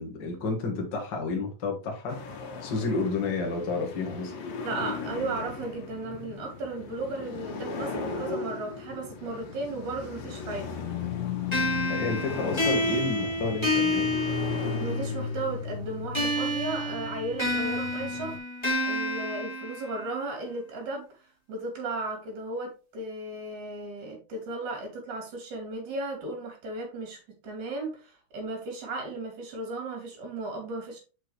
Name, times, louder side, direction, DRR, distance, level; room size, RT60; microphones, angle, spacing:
voice 1, 0.0-4.3 11.9-14.1, left 3 dB, 40° left, 1 dB, 1.9 m, -31 dB
sound 1, 2.1-18.4, left 5 dB, 90° left, 3.1 m, -36 dB
voice 2, 4.6-10.7 14.8-18.3 18.8-21.2 21.5-27.2 27.4-31.0, right 2 dB, 60° right, 1 dB, 4.0 m, -35 dB
sound 2, 11.5-15.1 16.1-20.2, left 1 dB, 10° left, 2.7 m, -29 dB
6.3 x 6.0 x 3.3 m, 0.32 s
omnidirectional pair, 4.0 m